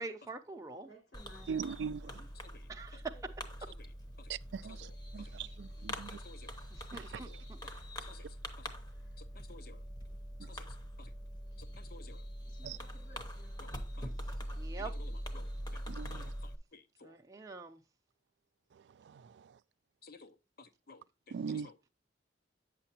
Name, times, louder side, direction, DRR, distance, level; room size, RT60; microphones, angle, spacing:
voice 1, 0.0-0.9 2.7-3.0 6.7-7.6 14.6-14.9 17.0-17.8, right 3 dB, 20° right, 0.6 m, -45 dB
voice 2, 0.8-2.3 7.6-7.9 8.5-9.5 12.4-13.7, equal, 75° left, 5.0 m, -60 dB
Fireworks, 1.1-16.6, equal, 20° left, 0.9 m, -43 dB
voice 3, 1.5-2.0 4.3-6.2 6.9-7.3 12.6-12.8 15.9-16.3 19.0-19.6 21.3-21.7, right 6 dB, 70° right, 0.3 m, -41 dB
voice 4, 2.5-3.0 3.8-3.9 4.2-4.3 4.7-5.3 5.9-6.6 7.1-7.7 8.0-8.7 9.2-9.8 10.4-10.7 11.0-11.1 11.6-12.3 13.6-14.1 14.8-15.8 16.1-17.2 20.0-21.9, left 4 dB, 55° left, 0.7 m, -57 dB
9.0 x 6.8 x 2.8 m
head